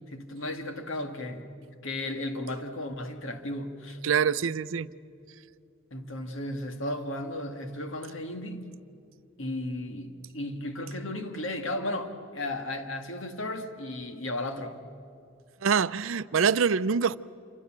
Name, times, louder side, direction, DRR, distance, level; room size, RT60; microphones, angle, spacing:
voice 1, 0.1-1.5 1.8-4.0 5.9-8.7 9.4-14.8, left 1 dB, 65° left, 2.0 m, -35 dB
voice 2, 4.0-4.9 15.6-17.2, right 6 dB, 70° right, 0.5 m, -25 dB
28.0 x 25.0 x 7.5 m
head